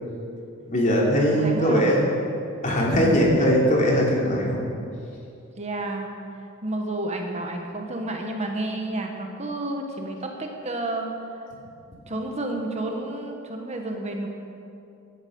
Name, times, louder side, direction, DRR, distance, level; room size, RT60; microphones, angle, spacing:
voice 1, 0.6-2.0 2.6-4.7, equal, 40° left, -3 dB, 3.1 m, -20 dB
voice 2, 1.4-2.1 5.6-6.1 6.6-11.1 12.1-14.3, right 2 dB, 35° right, 2 dB, 1.3 m, -30 dB
16.5 x 11.0 x 5.4 m, 2.6 s
head